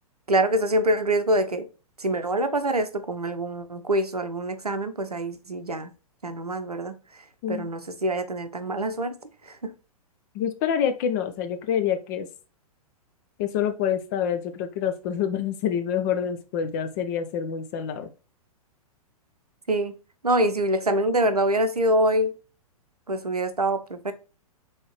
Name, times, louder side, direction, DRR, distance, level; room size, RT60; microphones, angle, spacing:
voice 1, 0.3-1.7 2.0-5.9 6.2-7.2 7.5-9.2 9.4-9.7 19.7-19.9 20.2-22.3 23.1-24.1, right 1 dB, 85° right, 0.6 m, -25 dB
voice 2, 10.3-12.3 13.4-18.1, left 8 dB, 30° left, 0.5 m, -27 dB
4.3 x 3.2 x 3.0 m
figure-of-eight pair, 110°, 19 cm